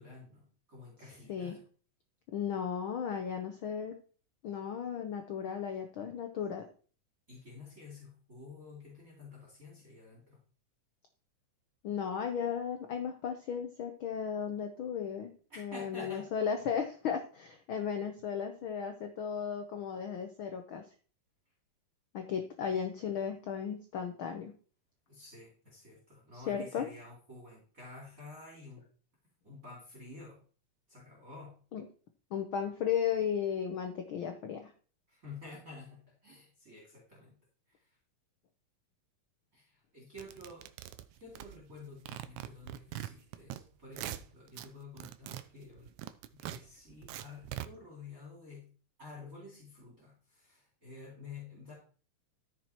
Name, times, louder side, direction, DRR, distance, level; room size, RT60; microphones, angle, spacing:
voice 1, 0.0-1.6 7.3-10.4 15.5-16.3 25.1-28.8 29.4-30.4 30.9-31.5 35.1-37.4 37.7-38.0 39.5-40.7 41.2-46.0 46.3-48.7 49.0-51.7, left 3 dB, 25° right, -4 dB, 3.6 m, -50 dB
voice 2, 2.3-3.9 4.4-6.6 11.8-15.3 15.6-20.8 22.1-24.5 26.5-26.9 31.7-31.9 32.3-34.7, left 7 dB, 75° left, 6 dB, 1.2 m, -35 dB
sound 1, 40.2-41.8 42.1-43.6 43.9-44.7 45.0-47.7, right 13 dB, 80° right, 2.0 m, -42 dB
13.5 x 6.0 x 4.5 m, 0.41 s
omnidirectional pair, 3.6 m